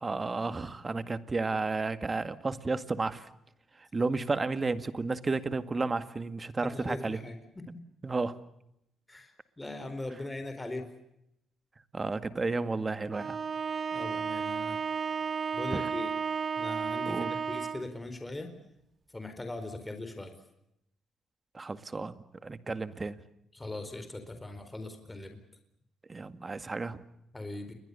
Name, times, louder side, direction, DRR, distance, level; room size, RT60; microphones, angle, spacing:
voice 1, 0.0-3.3 3.8-7.2 8.0-8.4 11.9-13.4 15.7-15.9 17.1-17.3 21.5-22.2 22.4-23.2 26.1-27.0, right 3 dB, 25° right, 11 dB, 1.9 m, -32 dB
voice 2, 6.6-7.8 9.1-10.9 13.9-14.8 15.5-16.1 16.6-18.5 19.1-20.3 23.5-25.4 27.3-27.7, left 2 dB, 15° left, 7 dB, 4.6 m, -40 dB
Bowed string instrument, 13.1-18.0, right 6 dB, 45° right, 1.9 m, -33 dB
29.5 x 22.5 x 7.0 m, 0.80 s
cardioid pair, 90°, 0 cm